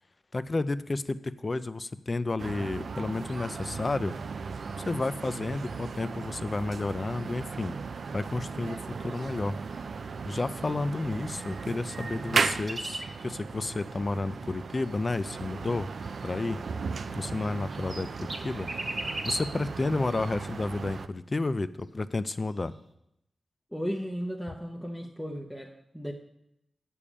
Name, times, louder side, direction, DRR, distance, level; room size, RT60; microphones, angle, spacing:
voice 1, 0.3-4.2 4.8-7.7 8.1-9.6 10.3-16.6 17.1-18.7 19.1-22.7, left 2 dB, 30° left, 13 dB, 0.4 m, -31 dB
sound 1, 2.4-21.1, right 5 dB, 65° right, 0.4 m, -36 dB
sound 2, 11.3-13.2 17.5-19.6 22.6-22.7, right 2 dB, 35° right, 1.3 m, -37 dB
voice 2, 23.7-26.1, equal, ahead, 0 dB, 0.7 m, -35 dB
8.4 x 6.9 x 7.3 m, 0.82 s
wide cardioid pair, 140°, 0 cm